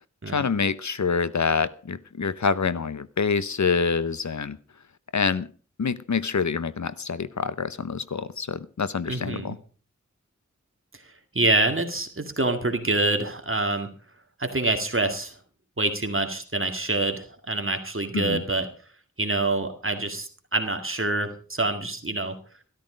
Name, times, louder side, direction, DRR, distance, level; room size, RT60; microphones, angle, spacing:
voice 1, 0.3-4.6 5.1-5.5 5.8-9.6 18.1-18.4, left 5 dB, 75° left, 16 dB, 0.8 m, -26 dB
voice 2, 9.1-9.5 11.3-13.9 14.4-15.3 15.8-18.7 19.2-22.4, right 2 dB, 45° right, 6 dB, 2.0 m, -26 dB
13.0 x 13.0 x 5.1 m, 0.39 s
wide cardioid pair, 50°, 29 cm